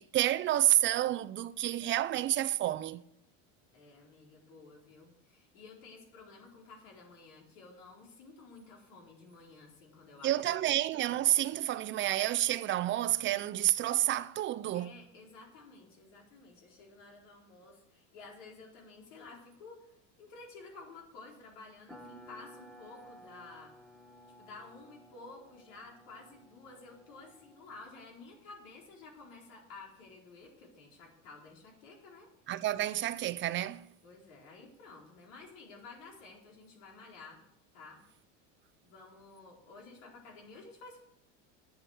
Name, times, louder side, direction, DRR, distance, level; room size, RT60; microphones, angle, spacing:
voice 1, 0.0-3.0 10.2-15.0 32.5-33.9, right 13 dB, 30° right, 0.5 m, -29 dB
voice 2, 3.7-10.7 14.7-23.7 24.4-32.3 34.0-37.4 37.7-38.0 38.8-41.0, left 3 dB, 80° left, 4.3 m, -52 dB
sound 1, 21.9-28.1, equal, ahead, 1.1 m, -55 dB
9.4 x 7.5 x 8.1 m
supercardioid pair, 125°, 37 cm